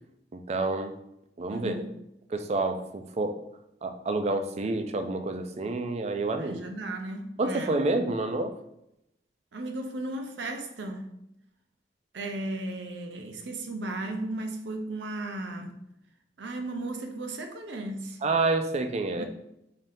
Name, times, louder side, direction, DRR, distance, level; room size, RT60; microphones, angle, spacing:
voice 1, 0.3-0.9 1.4-1.7 2.3-3.4 3.8-6.7 7.4-8.5 18.2-19.2, right 2 dB, 40° right, 7 dB, 0.4 m, -28 dB
voice 2, 1.5-2.0 6.4-7.8 9.5-11.1 12.1-15.8 16.4-18.2 19.2-19.3, right 2 dB, 90° right, 5 dB, 0.6 m, -35 dB
4.0 x 2.7 x 3.4 m, 0.82 s
head